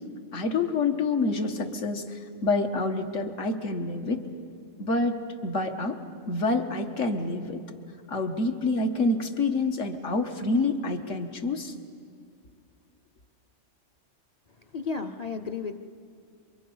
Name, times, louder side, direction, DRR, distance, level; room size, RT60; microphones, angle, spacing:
voice 1, 0.3-4.2 4.8-5.2 5.4-5.9 6.3-7.6 8.1-11.7, left 3 dB, 75° left, 5 dB, 1.7 m, -27 dB
voice 2, 14.7-15.8, left 5 dB, 40° left, 5 dB, 0.6 m, -33 dB
27.5 x 24.5 x 5.5 m, 2.3 s
omnidirectional pair, 1.3 m